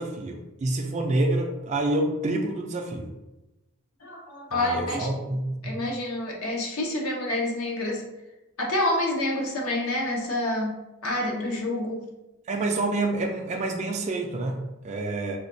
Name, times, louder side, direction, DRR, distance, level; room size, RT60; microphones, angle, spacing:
voice 1, 0.0-3.1 4.5-5.7 12.5-15.4, right 2 dB, 30° right, 1 dB, 0.3 m, -28 dB
voice 2, 4.0-5.1 5.6-8.0 8.6-10.7 11.0-12.0, left 1 dB, 70° left, -1 dB, 0.7 m, -28 dB
4.1 x 2.2 x 2.5 m, 0.99 s
head